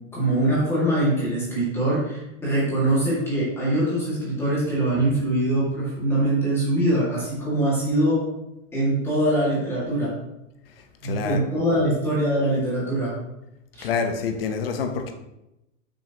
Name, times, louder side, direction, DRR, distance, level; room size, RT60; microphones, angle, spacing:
voice 1, 0.1-8.2 8.7-10.1 11.0-13.1 13.8-13.9, right 1 dB, 5° left, 2.0 m, -23 dB
voice 2, 11.0-11.4 11.7-11.8 13.8-15.1, left 6 dB, 45° left, 1.0 m, -27 dB
8.5 x 6.4 x 2.9 m
supercardioid pair, 175°, 39 cm